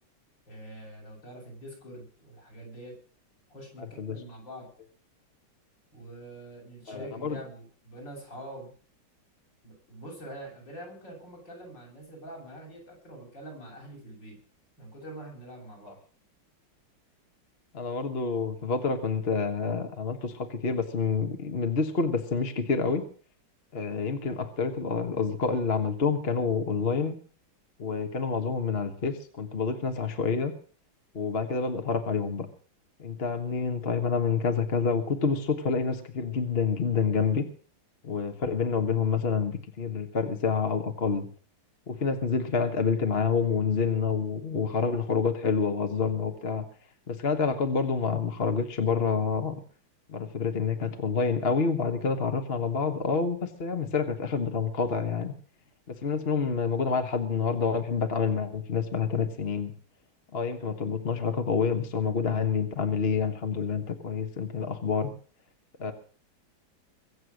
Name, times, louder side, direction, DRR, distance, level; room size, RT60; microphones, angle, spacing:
voice 1, 0.5-2.9 3.5-4.7 5.9-8.7 9.6-14.4 14.8-16.0, right 1 dB, 65° left, -1 dB, 8.0 m, -44 dB
voice 2, 6.9-7.4 15.9-16.0 17.7-23.0 23.7-27.2 27.8-30.5 31.1-32.5 33.0-37.4 38.0-41.3 41.9-46.6 47.1-49.6 50.1-55.3 55.9-59.7 60.3-65.1 65.8-65.9, left 5 dB, 35° left, 7 dB, 1.3 m, -28 dB
23.0 x 7.8 x 6.4 m, 0.43 s
omnidirectional pair, 2.2 m